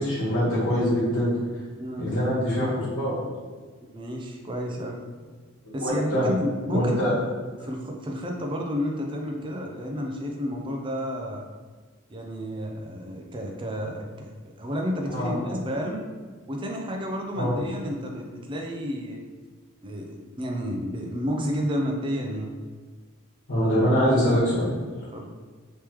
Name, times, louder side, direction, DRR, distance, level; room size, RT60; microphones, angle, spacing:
voice 1, 0.0-1.3 2.0-3.2 5.8-6.2 6.7-7.1 15.1-15.5 17.3-17.6 23.5-24.7, equal, 65° left, -10 dB, 1.4 m, -24 dB
voice 2, 3.9-5.0 5.7-7.2 7.6-11.5 12.1-14.3 14.6-16.0 16.5-19.2 19.8-22.5 25.1-25.3, equal, 25° right, 1 dB, 0.4 m, -31 dB
3.4 x 3.1 x 3.0 m, 1.5 s
head